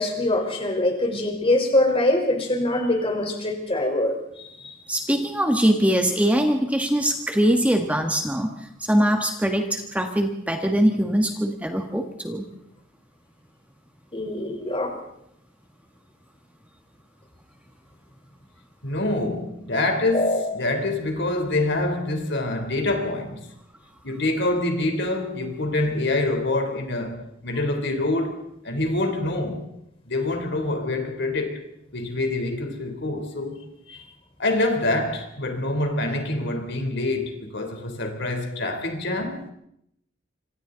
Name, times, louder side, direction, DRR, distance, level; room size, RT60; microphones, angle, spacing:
voice 1, 0.0-4.7 14.1-14.9 20.1-20.4, left 1 dB, 30° left, 4.3 m, -23 dB
voice 2, 4.9-12.4, equal, 5° right, 1.5 m, -22 dB
voice 3, 18.8-23.5 24.0-29.6 30.1-31.6 31.9-33.6 34.4-39.5, left 2 dB, 60° left, 3.7 m, -26 dB
26.5 x 26.0 x 4.0 m
head